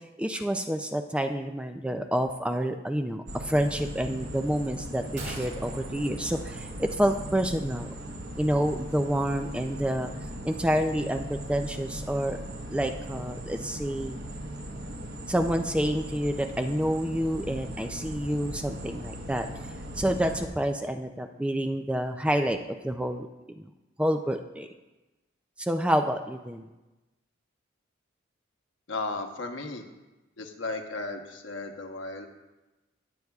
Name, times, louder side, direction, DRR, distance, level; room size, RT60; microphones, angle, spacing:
voice 1, 0.0-7.9 8.4-10.1 10.4-12.4 12.7-14.2 15.3-19.5 20.0-23.3 23.6-23.7 24.0-24.7 25.6-26.6, equal, 5° right, 6 dB, 0.4 m, -28 dB
sound 1, 3.3-20.5, equal, 55° right, 1.2 m, -39 dB
sound 2, 5.2-7.5 7.8-7.9, right 2 dB, 80° right, 1.9 m, -44 dB
voice 2, 28.9-29.9 30.4-32.3, left 3 dB, 70° left, 4 dB, 1.1 m, -35 dB
19.0 x 7.8 x 2.4 m, 1.1 s
head